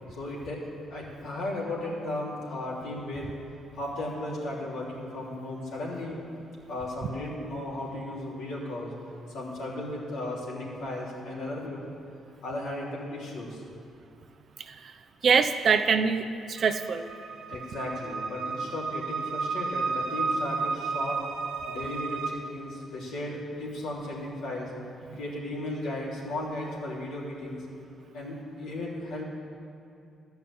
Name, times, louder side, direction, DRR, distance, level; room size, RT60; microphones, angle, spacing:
voice 1, 0.1-3.3 3.7-6.2 6.7-8.9 9.3-11.8 12.4-13.6 17.5-21.2 21.6-24.7 25.1-27.6 28.1-29.2, left 1 dB, 85° left, -5 dB, 3.2 m, -35 dB
voice 2, 15.2-17.1 25.1-25.2, right 5 dB, 55° right, 7 dB, 0.7 m, -24 dB
sound 1, 16.6-22.3, right 4 dB, 85° right, 1.2 m, -32 dB
12.5 x 5.7 x 8.8 m, 2.6 s
cardioid pair, 90°, 0 cm